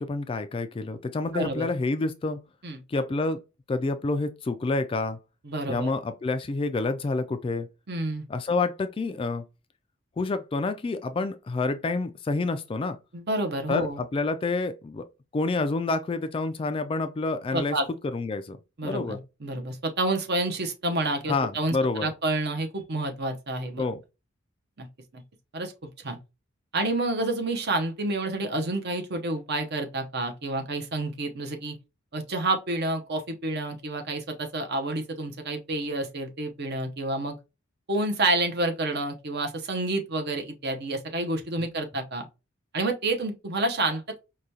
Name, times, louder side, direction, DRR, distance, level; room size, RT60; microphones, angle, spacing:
voice 1, 0.0-2.4 2.9-3.4 3.7-5.2 5.7-7.7 8.3-9.4 10.2-13.0 13.7-15.0 15.3-17.8 18.0-18.6 18.8-19.2 21.3-22.1 23.8-24.0, left 3 dB, 25° left, 0.3 m, -28 dB
voice 2, 1.3-1.7 2.6-2.8 5.4-5.9 7.9-8.2 13.1-14.0 17.5-17.9 18.8-23.8 24.8-24.9 25.1-25.2 25.5-26.2 26.7-31.8 32.1-37.4 37.9-42.3 42.7-44.2, right 2 dB, 55° right, 0.8 m, -29 dB
4.8 x 2.3 x 2.7 m
head